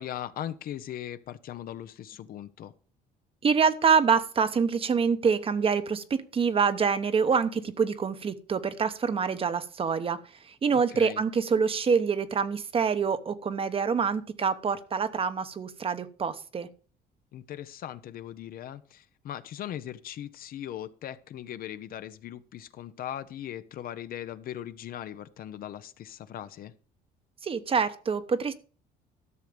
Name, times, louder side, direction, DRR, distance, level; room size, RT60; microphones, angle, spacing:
voice 1, 0.0-2.7 10.9-11.2 17.3-26.7, left 11 dB, 60° left, 0.7 m, -39 dB
voice 2, 3.4-16.7 27.4-28.5, right 6 dB, 35° right, 0.9 m, -26 dB
12.5 x 6.5 x 5.0 m
cardioid pair, 110°, 17 cm